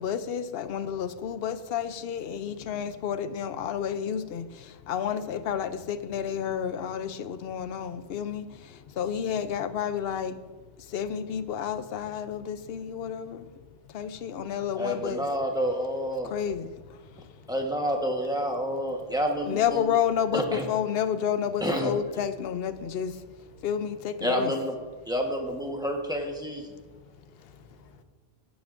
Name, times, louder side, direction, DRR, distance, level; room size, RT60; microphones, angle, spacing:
voice 1, 0.0-8.5 9.0-10.3 10.9-13.5 13.9-15.3 16.2-16.7 19.5-23.1 23.6-24.5, left 8 dB, 70° left, 13 dB, 0.8 m, -30 dB
voice 2, 14.7-16.3 17.5-20.0 20.3-20.6 21.6-21.9 24.2-24.7 25.1-26.7, equal, 5° right, 1 dB, 1.1 m, -29 dB
voice 3, 17.0-17.5 23.5-23.7 26.7-28.0, left 4 dB, 45° left, 5 dB, 1.1 m, -55 dB
16.0 x 9.3 x 2.5 m, 1.3 s
omnidirectional pair, 1.1 m